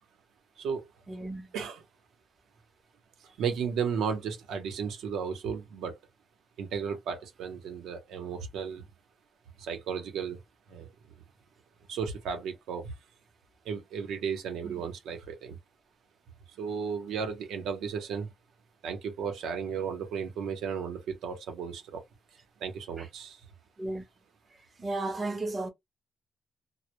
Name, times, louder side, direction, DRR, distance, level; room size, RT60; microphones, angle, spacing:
voice 1, 1.1-1.5 14.6-14.7 23.0-23.1 23.8-24.0 24.8-25.7, right 2 dB, 20° right, 0.6 m, -34 dB
voice 2, 3.4-6.0 6.6-8.8 9.6-10.4 10.7-10.9 11.9-12.9 13.6-15.6 16.6-18.3 18.8-22.0 22.6-23.4, right 6 dB, 75° right, 0.7 m, -34 dB
2.1 x 2.1 x 2.9 m
cardioid pair, 170°, 0 cm